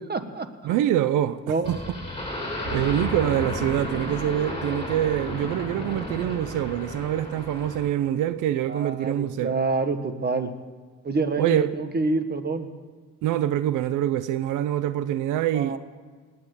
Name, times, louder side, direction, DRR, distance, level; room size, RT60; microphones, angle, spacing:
voice 1, 0.1-0.7 1.4-1.8 8.7-10.5 11.0-12.7 15.5-15.8, right 3 dB, 35° right, 1.5 m, -27 dB
voice 2, 0.6-1.9 2.7-9.5 11.4-11.7 13.2-15.8, right 11 dB, 85° right, 0.6 m, -25 dB
sound 1, 1.6-7.9, left 1 dB, 15° left, 5.4 m, -33 dB
sound 2, 2.6-5.3, equal, 55° right, 5.0 m, -37 dB
18.5 x 9.5 x 8.1 m
cardioid pair, 90°, 30 cm